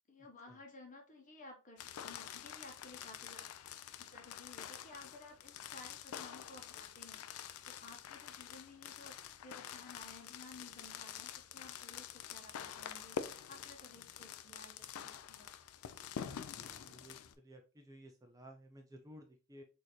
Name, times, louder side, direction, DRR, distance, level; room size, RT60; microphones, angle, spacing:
voice 1, 0.1-3.5 4.1-15.5, left 2 dB, 35° left, 2 dB, 0.9 m, -56 dB
sound 1, 1.8-17.3, left 9 dB, 70° left, 0.4 m, -47 dB
voice 2, 16.1-19.6, right 1 dB, 15° right, 3 dB, 0.4 m, -56 dB
4.1 x 2.6 x 3.0 m, 0.33 s
head